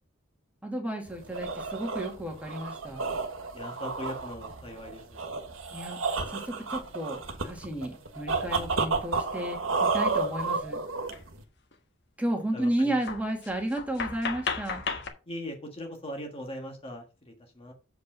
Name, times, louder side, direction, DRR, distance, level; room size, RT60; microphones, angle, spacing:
voice 1, 0.6-3.0 5.7-6.0 6.3-10.8 12.2-14.9, right 1 dB, 5° right, 2 dB, 2.3 m, -33 dB
sound 1, 1.1-11.4, right 4 dB, 70° right, 1.5 m, -31 dB
voice 2, 3.5-5.3 12.5-13.0 15.3-17.7, left 1 dB, 30° left, 3 dB, 1.6 m, -40 dB
sound 2, 9.4-9.5 11.1-11.2 11.5-11.7 12.4-12.5 13.0-15.1, left 5 dB, 60° left, 1.5 m, -35 dB
8.1 x 5.2 x 5.4 m, 0.32 s
head